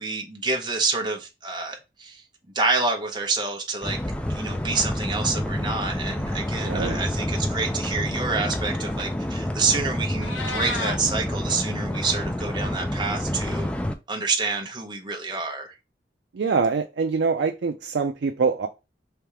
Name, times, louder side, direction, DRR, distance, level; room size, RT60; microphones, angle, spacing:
voice 1, 0.0-2.2 2.5-4.0 4.3-13.7 14.1-15.7, right 4 dB, 25° right, 0.8 m, -28 dB
sound 1, 3.8-13.9, left 1 dB, 5° left, 0.4 m, -28 dB
voice 2, 6.6-7.0 16.3-18.7, right 5 dB, 75° right, 0.4 m, -24 dB
Meow, 10.0-11.0, left 2 dB, 90° left, 1.1 m, -31 dB
3.4 x 2.7 x 4.6 m
head